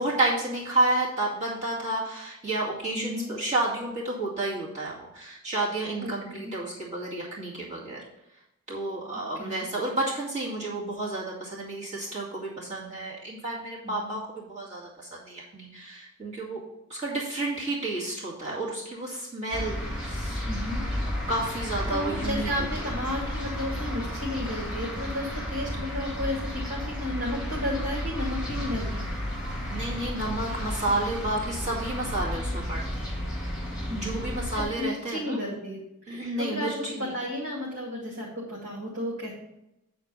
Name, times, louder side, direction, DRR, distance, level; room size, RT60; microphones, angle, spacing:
voice 1, 0.0-8.0 8.7-16.6 16.9-20.5 21.0-22.5 22.8-22.9 29.6-33.1 33.9-35.4 36.1-37.1, right 2 dB, 30° right, -7 dB, 2.2 m, -31 dB
voice 2, 2.9-3.3 6.0-6.5 9.3-9.7 13.8-14.1 20.5-20.8 21.9-29.1 33.9-34.3 34.5-35.8 36.0-39.3, left 1 dB, 80° right, -5 dB, 2.3 m, -33 dB
sound 1, 19.5-34.6, equal, 5° right, 3.0 m, -32 dB
9.0 x 4.5 x 5.5 m, 0.87 s
head